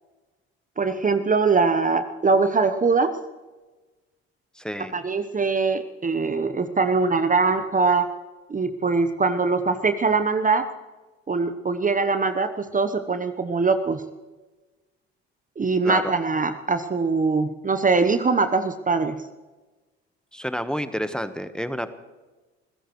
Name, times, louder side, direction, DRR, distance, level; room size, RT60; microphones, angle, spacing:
voice 1, 0.8-3.2 4.9-8.1 8.5-10.7 11.3-14.0 15.6-19.2, right 4 dB, 25° right, 9 dB, 1.0 m, -22 dB
voice 2, 4.6-4.9 15.8-16.1 20.3-21.9, equal, ahead, 11 dB, 1.2 m, -29 dB
26.0 x 16.5 x 3.2 m, 1.2 s
hypercardioid pair, 55°, 32 cm